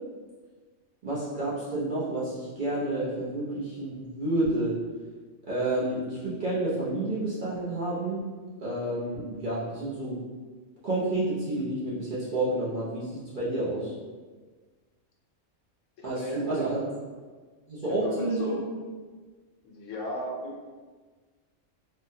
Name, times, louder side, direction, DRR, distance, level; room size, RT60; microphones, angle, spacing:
voice 1, 1.0-4.7 5.5-8.2 8.6-10.2 10.8-13.9 16.0-16.8 17.7-18.6 20.4-20.5, right 2 dB, 50° right, -9 dB, 0.7 m, -29 dB
voice 2, 16.1-16.7 17.9-18.6 19.6-20.4, left 2 dB, 70° left, -1 dB, 0.9 m, -35 dB
3.6 x 2.1 x 2.7 m, 1.4 s
omnidirectional pair, 1.4 m